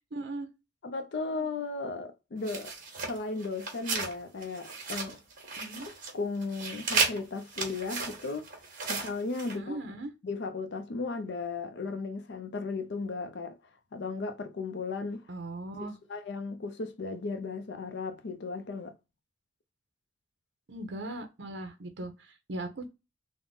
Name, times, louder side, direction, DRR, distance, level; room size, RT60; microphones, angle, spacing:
voice 1, 0.1-0.5 5.6-5.9 9.5-10.1 15.3-15.9 20.7-22.9, right 2 dB, 70° right, 0.6 m, -38 dB
voice 2, 0.8-2.7 3.1-5.2 6.1-8.5 8.9-9.8 10.2-13.6 13.9-15.3 15.8-18.9, left 3 dB, 65° left, 0.5 m, -35 dB
sound 1, 2.4-4.1 4.4-6.1 6.4-9.6, right 4 dB, 45° right, 1.2 m, -34 dB
3.5 x 2.1 x 3.7 m
head